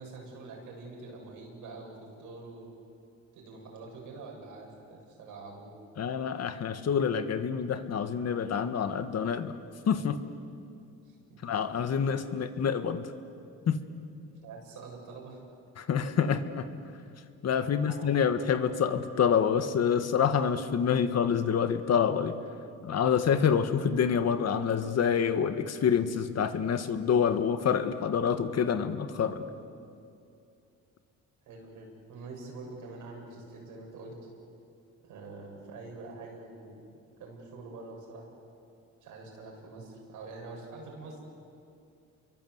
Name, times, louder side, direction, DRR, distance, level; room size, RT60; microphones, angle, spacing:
voice 1, 0.0-2.7 3.3-5.7 11.0-11.4 14.4-15.4 17.7-18.1 31.5-34.1 35.0-36.8 37.2-38.3 39.0-41.2, right 3 dB, 90° right, 0 dB, 7.3 m, -45 dB
voice 2, 6.0-9.6 9.9-10.2 11.4-13.0 13.7-13.8 15.8-16.7 17.4-22.4 22.8-29.4, left 7 dB, 60° left, 9 dB, 1.7 m, -27 dB
29.0 x 23.0 x 8.1 m, 2.5 s
cardioid pair, 90°, 30 cm